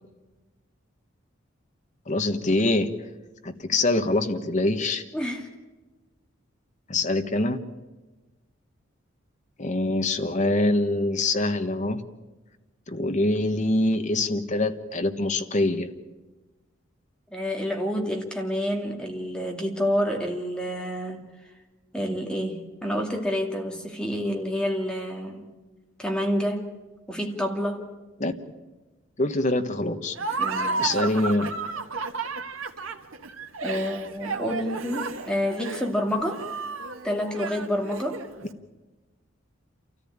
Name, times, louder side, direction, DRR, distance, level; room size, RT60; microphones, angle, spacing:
voice 1, 2.1-2.9 3.4-5.0 6.9-7.6 9.6-12.0 12.9-15.9 28.2-28.3 29.2-30.1 30.8-31.5, left 2 dB, 35° left, 7 dB, 1.3 m, -24 dB
voice 2, 5.1-5.5 17.3-21.3 21.9-25.5 26.0-26.7 27.1-27.8 30.4-31.0 33.6-36.4 37.0-38.2, equal, 5° left, 1 dB, 2.4 m, -28 dB
Laughter, 30.1-38.4, right 4 dB, 90° right, 1.5 m, -32 dB
28.0 x 14.0 x 8.8 m, 1.2 s
head